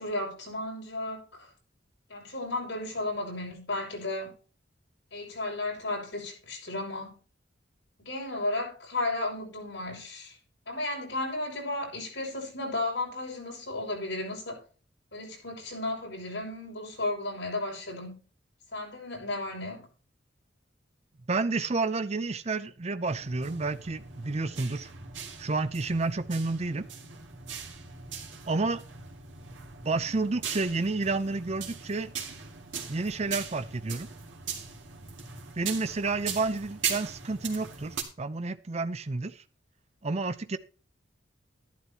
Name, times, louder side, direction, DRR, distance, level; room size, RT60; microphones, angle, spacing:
voice 1, 0.0-1.5 2.1-4.3 5.1-7.2 8.0-10.3 10.7-14.6 15.1-18.2 18.7-19.9, left 2 dB, 70° left, 6.2 m, -34 dB
voice 2, 21.3-24.9 25.4-26.9 28.5-28.8 29.8-32.1 32.9-34.1 35.6-39.4 40.0-40.6, right 3 dB, 35° right, 0.6 m, -30 dB
sound 1, 23.1-38.0, right 6 dB, 80° right, 2.3 m, -40 dB
12.5 x 11.5 x 2.9 m
head